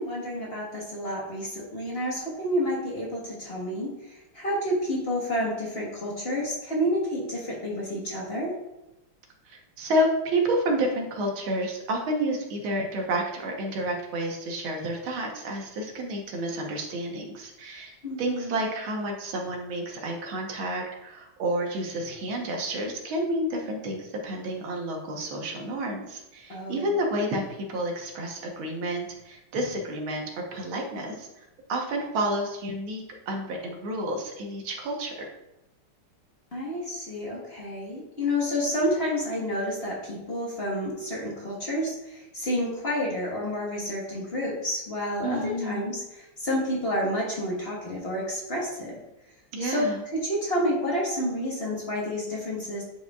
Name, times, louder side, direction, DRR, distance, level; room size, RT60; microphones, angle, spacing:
voice 1, 0.0-8.6 18.0-18.6 26.5-26.9 36.5-49.0 49.6-52.8, equal, 35° left, -4 dB, 1.2 m, -29 dB
voice 2, 9.5-30.3 30.5-35.1 45.2-45.8 49.5-50.0, right 1 dB, 70° right, 1 dB, 1.8 m, -30 dB
9.5 x 4.8 x 2.3 m, 0.94 s
omnidirectional pair, 2.4 m